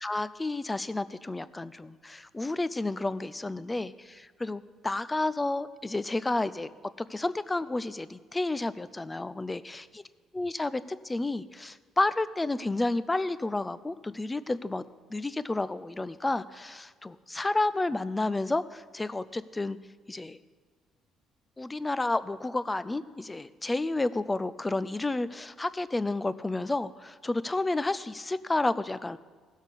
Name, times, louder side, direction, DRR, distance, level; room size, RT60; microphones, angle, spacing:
voice 1, 0.0-6.7 7.0-9.8 10.3-14.8 15.1-19.8 20.1-20.4 21.6-29.2, left 2 dB, 15° left, 15 dB, 0.4 m, -31 dB
16.0 x 6.4 x 5.2 m, 1.5 s
cardioid pair, 100°, 0 cm